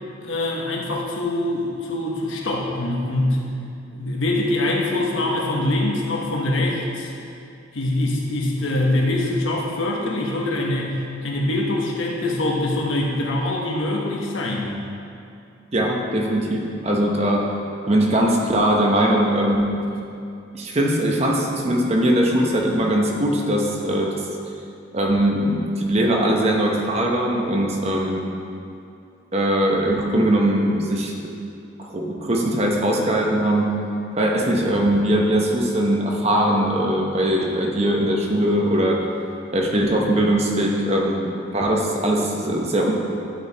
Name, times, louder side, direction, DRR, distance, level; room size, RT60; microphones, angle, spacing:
voice 1, 0.2-3.4 3.9-7.1 7.7-14.8, left 1 dB, 80° left, -2 dB, 1.2 m, -24 dB
voice 2, 15.7-17.5 17.9-19.7 20.5-24.1 24.9-28.3 29.3-31.1 31.8-33.7 34.2-39.0 39.5-42.9, right 1 dB, 30° right, 0 dB, 0.8 m, -20 dB
11.5 x 4.7 x 4.1 m, 2.6 s
head